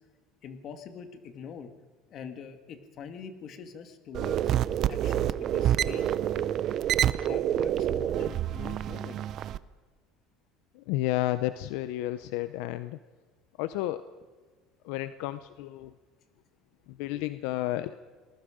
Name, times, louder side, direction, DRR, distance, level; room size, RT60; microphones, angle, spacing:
voice 1, 0.4-1.7 2.1-4.5 4.9-6.5 7.2-9.2, left 6 dB, 50° left, 7 dB, 2.0 m, -43 dB
sound 1, 4.1-9.6, right 11 dB, 50° right, 0.6 m, -27 dB
voice 2, 10.9-13.0 13.6-14.0 14.9-15.9 17.0-17.9, left 15 dB, 80° left, 12 dB, 0.6 m, -31 dB
27.0 x 20.0 x 5.1 m, 1.4 s
cardioid pair, 125°, 0 cm